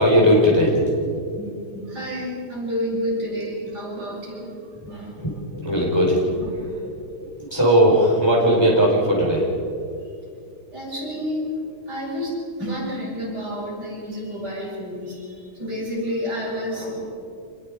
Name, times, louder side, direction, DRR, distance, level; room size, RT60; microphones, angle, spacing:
voice 1, 0.0-1.2 5.2-6.2 7.1-9.5, equal, 10° left, -3 dB, 4.7 m, -18 dB
voice 2, 1.9-4.5 4.9-5.2 10.7-11.6 11.9-17.1, equal, 50° right, -4 dB, 7.0 m, -29 dB
26.5 x 21.0 x 5.0 m, 2.4 s
omnidirectional pair, 2.3 m